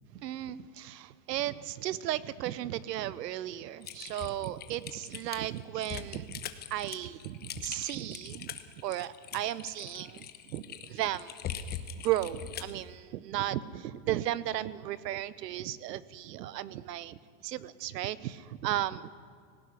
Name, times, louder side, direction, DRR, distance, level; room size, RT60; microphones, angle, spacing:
voice 1, 0.1-11.6 11.9-19.1, right 13 dB, 80° right, 18 dB, 1.1 m, -35 dB
Typing, 3.8-12.8, left 9 dB, 20° left, 1.0 m, -42 dB
18.5 x 17.0 x 9.7 m, 2.1 s
supercardioid pair, 150°, 48 cm